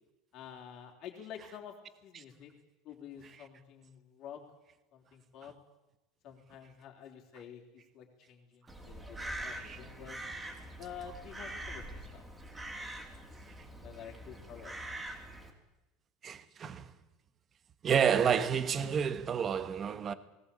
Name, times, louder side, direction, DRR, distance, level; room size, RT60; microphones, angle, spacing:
voice 1, 0.3-2.5 2.8-4.4 4.9-5.5 6.2-10.2 10.8-12.2 12.8-13.1 13.8-14.8, left 8 dB, 40° left, 3.8 m, -49 dB
Crow, 8.7-15.5, right 1 dB, 10° right, 3.1 m, -44 dB
voice 2, 16.2-16.9 17.8-20.1, right 7 dB, 25° right, 1.2 m, -29 dB
19.0 x 18.5 x 8.6 m
supercardioid pair, 155°, 0 cm